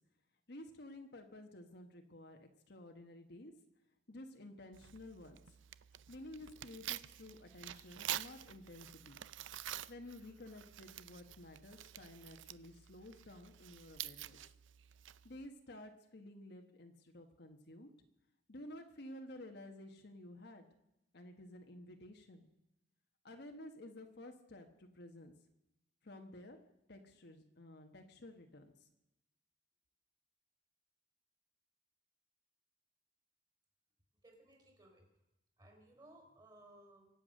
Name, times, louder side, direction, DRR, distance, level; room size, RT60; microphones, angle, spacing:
voice 1, 0.5-3.5 4.1-5.4 6.1-9.2 9.9-14.4 15.2-17.9 18.5-20.6 21.1-22.5 23.2-25.3 26.0-26.6 26.9-28.9, left 1 dB, 60° left, 4 dB, 1.4 m, -53 dB
Tearing, 4.7-15.5, right 12 dB, 80° right, 0.5 m, -48 dB
voice 2, 34.2-35.1 35.6-37.1, right 1 dB, 20° right, 1 dB, 4.2 m, -61 dB
24.5 x 8.4 x 6.4 m, 0.88 s
head